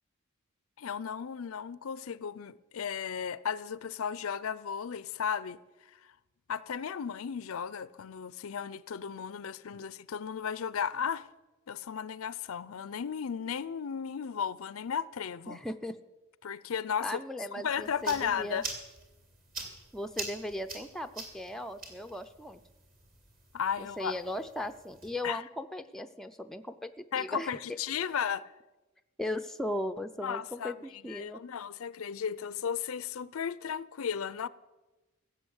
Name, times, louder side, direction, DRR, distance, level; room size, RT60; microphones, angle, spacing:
voice 1, 0.8-5.6 6.0-6.1 6.5-11.3 11.7-15.6 16.4-17.2 17.6-18.7 23.5-24.2 25.2-25.4 27.1-28.5 30.2-30.7 31.0-34.5, left 7 dB, 75° left, 0.5 m, -35 dB
voice 2, 15.5-16.0 17.0-18.6 19.9-22.6 23.8-27.5 29.2-31.4, left 1 dB, ahead, 0.5 m, -37 dB
sound 1, 17.7-25.1, right 3 dB, 40° right, 3.1 m, -45 dB
15.5 x 7.8 x 8.0 m
head